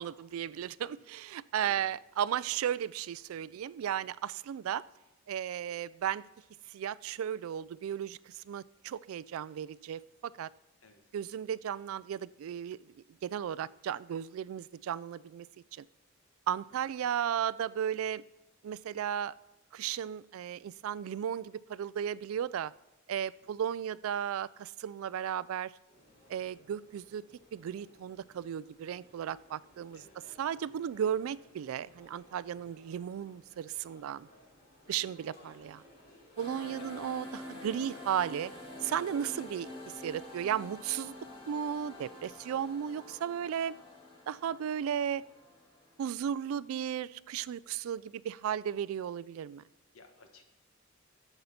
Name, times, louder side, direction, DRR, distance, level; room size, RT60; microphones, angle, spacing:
voice 1, 0.0-4.8 5.3-6.2 6.7-10.5 11.1-12.8 13.2-15.5 15.8-15.9 16.5-18.2 18.6-19.3 19.7-22.7 23.1-25.7 26.3-27.2 27.5-30.0 30.4-34.3 34.9-35.8 36.4-38.5 38.8-39.7 40.0-41.1 41.5-43.7 44.3-45.2 46.0-49.6, right 9 dB, 75° right, 20 dB, 0.3 m, -35 dB
sound 1, 25.9-42.7, left 1 dB, 40° left, 3.9 m, -61 dB
voice 2, 29.9-30.3 32.7-32.8 34.9-35.1 36.7-37.0 39.4-39.6 49.9-50.5, left 3 dB, 70° left, 5 dB, 1.4 m, -58 dB
sound 2, 36.4-46.7, left 1 dB, 25° left, 2.8 m, -47 dB
11.0 x 7.9 x 4.2 m, 0.97 s
head